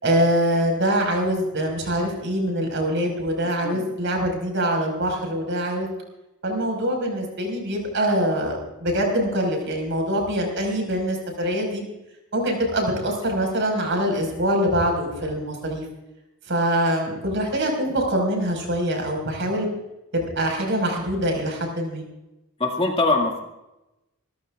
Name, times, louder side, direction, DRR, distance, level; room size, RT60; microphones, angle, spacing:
voice 1, 0.0-5.9 6.4-11.8 12.3-15.8 16.5-19.7 20.1-22.1, equal, 55° right, 2 dB, 5.2 m, -24 dB
voice 2, 22.6-23.4, left 3 dB, 25° left, 1 dB, 2.1 m, -22 dB
26.5 x 14.5 x 2.5 m, 0.95 s
head